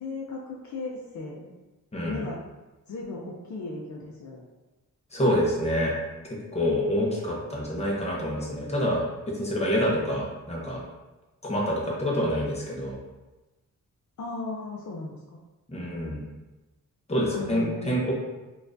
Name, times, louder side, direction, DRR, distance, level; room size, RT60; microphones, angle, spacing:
voice 1, 0.0-1.5 2.0-2.4 2.9-4.5 14.2-15.4 17.3-18.0, left 3 dB, 60° left, -2 dB, 0.5 m, -36 dB
voice 2, 1.9-2.2 5.1-5.9 6.3-10.8 11.4-13.0 15.7-16.2 17.1-18.1, equal, 20° left, -4 dB, 0.8 m, -27 dB
4.4 x 2.4 x 2.5 m, 1.1 s
wide cardioid pair, 120°, 33 cm